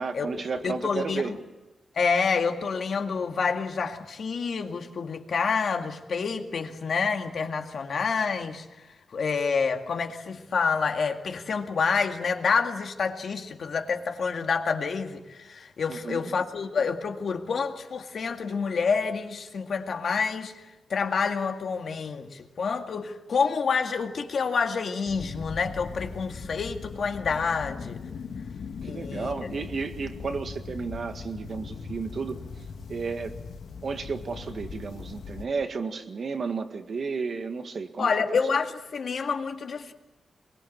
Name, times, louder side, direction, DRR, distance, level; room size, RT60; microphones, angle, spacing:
voice 1, 0.0-1.3 15.9-16.3 28.8-32.4 32.9-33.3 33.8-38.1, right 4 dB, 45° right, 1.8 m, -32 dB
voice 2, 0.6-1.2 2.0-8.7 9.1-20.5 20.9-28.0 28.8-29.4 38.0-39.9, left 5 dB, 55° left, 2.1 m, -28 dB
sound 1, 25.1-35.5, left 5 dB, 75° left, 2.2 m, -39 dB
24.5 x 22.5 x 8.8 m
wide cardioid pair, 170°, 0 cm